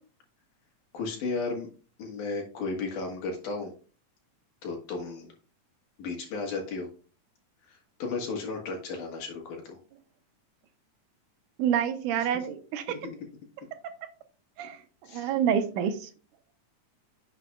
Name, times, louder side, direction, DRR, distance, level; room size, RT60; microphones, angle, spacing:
voice 1, 0.9-1.7 2.0-3.7 4.6-5.3 6.0-6.9 7.7-9.8 12.2-12.3 12.9-13.2 15.0-15.3, left 3 dB, 80° left, 1 dB, 3.0 m, -34 dB
voice 2, 11.6-12.8 14.6-14.8 15.1-16.1, right 8 dB, 80° right, 9 dB, 2.4 m, -27 dB
10.5 x 6.5 x 2.3 m, 0.39 s
omnidirectional pair, 3.5 m